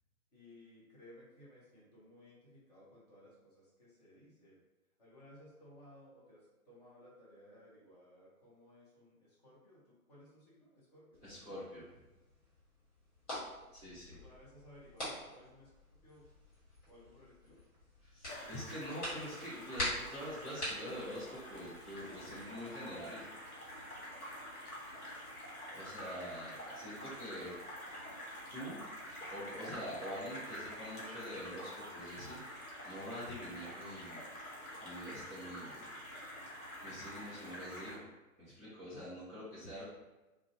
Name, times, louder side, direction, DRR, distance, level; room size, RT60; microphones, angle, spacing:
voice 1, 0.3-4.6 5.0-11.2 14.1-16.3 16.9-17.6, left 1 dB, 30° left, -8 dB, 0.7 m, -59 dB
sound 1, 11.1-22.4, equal, 50° left, 1.5 m, -45 dB
voice 2, 11.2-11.8 13.7-14.2 18.0-23.2 25.7-27.5 28.5-28.8 29.3-34.2 34.8-35.9 36.8-38.0 38.4-39.8, equal, 15° right, -18 dB, 0.5 m, -45 dB
sound 2, 18.2-37.9, equal, 70° left, 1.1 m, -48 dB
2.5 x 2.2 x 2.4 m, 1.1 s
figure-of-eight pair, 130°, 44 cm